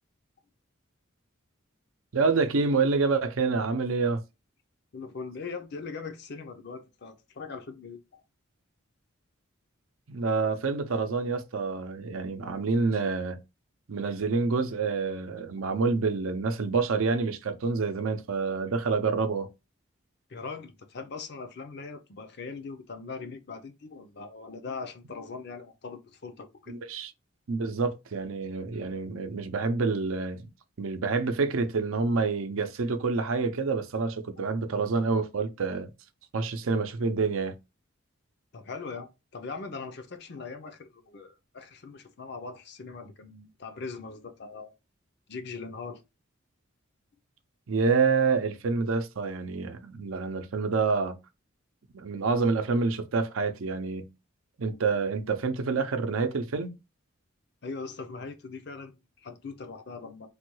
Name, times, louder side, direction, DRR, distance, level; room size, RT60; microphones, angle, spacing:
voice 1, 2.1-4.2 10.1-13.4 13.9-19.5 26.7-27.1 27.5-30.5 30.8-35.9 36.3-37.6 47.7-51.2 51.9-54.1 54.6-56.8, right 4 dB, 85° right, 0.6 m, -27 dB
voice 2, 4.9-8.2 20.3-26.8 38.5-44.7 45.3-46.0 54.7-54.8 57.6-60.3, left 4 dB, 55° left, 0.6 m, -40 dB
3.3 x 2.2 x 3.1 m
head